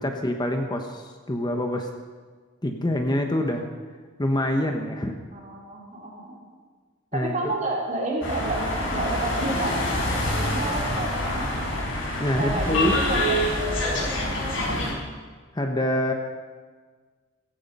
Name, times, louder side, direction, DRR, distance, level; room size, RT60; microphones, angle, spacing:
voice 1, 0.0-1.9 2.6-3.7 4.2-5.1 7.1-7.5 12.2-12.9 15.5-16.1, left 1 dB, 20° left, 4 dB, 1.1 m, -26 dB
voice 2, 5.3-6.4 7.1-8.6 8.9-9.9 10.3-11.5 12.4-14.1, right 2 dB, 40° right, -2 dB, 4.1 m, -30 dB
sound 1, 8.2-14.9, left 1 dB, 70° left, 6.2 m, -26 dB
16.0 x 15.5 x 5.5 m, 1.5 s
head